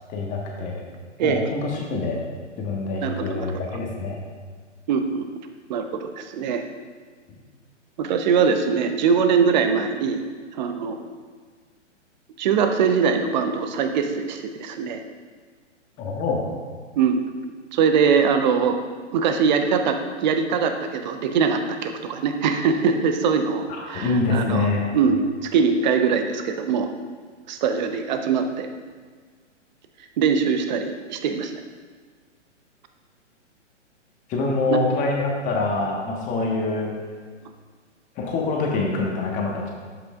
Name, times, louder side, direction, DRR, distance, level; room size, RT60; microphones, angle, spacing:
voice 1, 0.1-0.8 1.2-2.2 2.6-4.2 16.0-16.4 23.7-24.8 34.3-36.9 38.2-39.7, left 3 dB, 20° left, -1 dB, 1.3 m, -25 dB
voice 2, 3.0-3.5 4.9-5.2 5.7-6.6 8.0-10.2 10.6-11.1 12.4-15.0 17.0-17.2 17.7-18.8 19.1-24.7 24.9-25.2 25.4-26.9 27.5-28.7 30.2-31.5 34.7-34.8, right 6 dB, 35° right, 6 dB, 0.8 m, -22 dB
11.5 x 8.1 x 2.4 m, 1.5 s
figure-of-eight pair, 125°, 37 cm